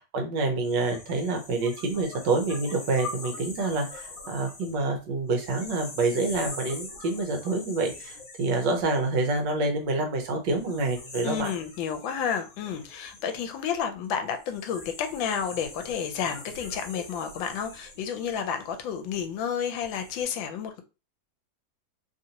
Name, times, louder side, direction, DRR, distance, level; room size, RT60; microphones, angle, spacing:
voice 1, 0.1-11.5, right 3 dB, 70° right, 3 dB, 1.4 m, -27 dB
sound 1, 0.6-9.8 10.5-19.2 19.7-20.2, left 3 dB, 50° left, 1.3 m, -43 dB
voice 2, 11.2-20.8, left 7 dB, 80° left, 7 dB, 1.3 m, -31 dB
3.4 x 2.5 x 2.8 m, 0.30 s
omnidirectional pair, 2.1 m